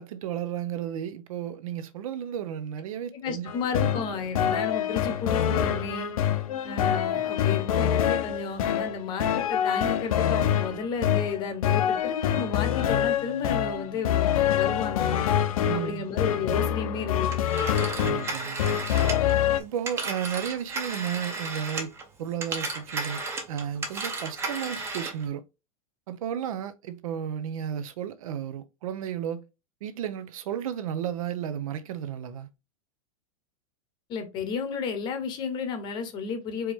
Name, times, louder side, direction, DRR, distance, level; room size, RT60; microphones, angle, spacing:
voice 1, 0.0-4.0 15.6-16.1 18.0-18.6 19.6-21.9 22.2-23.2 23.5-25.4 26.1-29.4 29.8-32.5, right 9 dB, 70° right, 0.7 m, -33 dB
voice 2, 3.1-6.1 6.6-15.2 15.7-17.2 34.1-36.7, left 5 dB, 25° left, 0.9 m, -33 dB
sound 1, 3.5-19.6, left 10 dB, 75° left, 0.8 m, -25 dB
Telephone, 17.3-22.0 22.3-25.2, right 3 dB, 15° right, 0.7 m, -34 dB
4.6 x 3.1 x 3.5 m
supercardioid pair, 170°, 18 cm